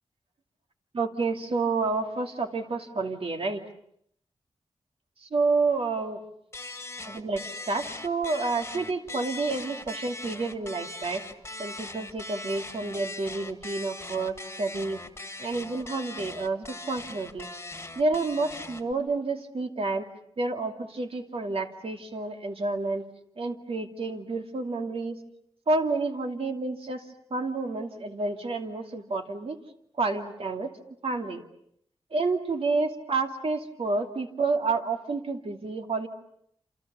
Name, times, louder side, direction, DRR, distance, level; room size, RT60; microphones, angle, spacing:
voice 1, 0.9-3.6 5.3-6.2 7.1-11.2 11.6-15.0 15.4-17.5 18.0-20.0 20.4-23.0 23.4-25.2 25.7-27.0 27.3-29.6 30.0-30.7 31.0-31.4 32.1-36.1, right 3 dB, 65° right, 5 dB, 2.7 m, -29 dB
sound 1, 6.5-18.9, left 2 dB, 25° left, 1.8 m, -40 dB
28.0 x 28.0 x 7.0 m, 0.71 s
wide cardioid pair, 110°, 11 cm